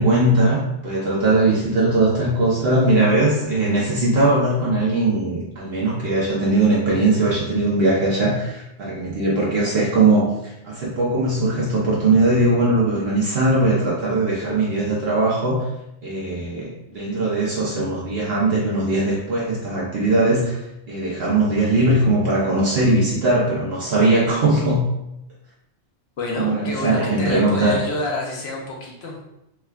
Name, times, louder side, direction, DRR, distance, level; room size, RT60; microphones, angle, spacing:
voice 1, 0.0-15.7 16.0-20.6 20.9-24.8 26.3-27.8, right 2 dB, 60° right, -6 dB, 1.0 m, -20 dB
voice 2, 26.2-29.2, left 2 dB, 65° left, -1 dB, 1.0 m, -28 dB
4.5 x 2.2 x 2.3 m, 0.86 s
omnidirectional pair, 1.2 m